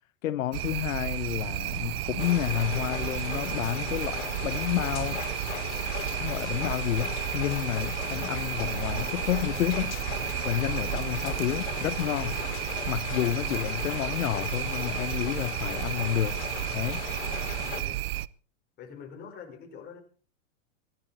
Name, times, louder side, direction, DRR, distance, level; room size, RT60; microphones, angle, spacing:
voice 1, 0.2-5.2 6.2-10.0 10.4-12.4 12.9-16.4 16.7-17.0, left 12 dB, 90° left, 1.0 m, -30 dB
sound 1, 0.5-18.3, right 15 dB, 50° right, 0.7 m, -33 dB
sound 2, 2.2-17.8, left 9 dB, 60° left, 5.3 m, -38 dB
voice 2, 17.6-18.0 18.8-20.0, left 6 dB, 25° left, 4.9 m, -45 dB
24.5 x 11.5 x 4.3 m
supercardioid pair, 155°, 39 cm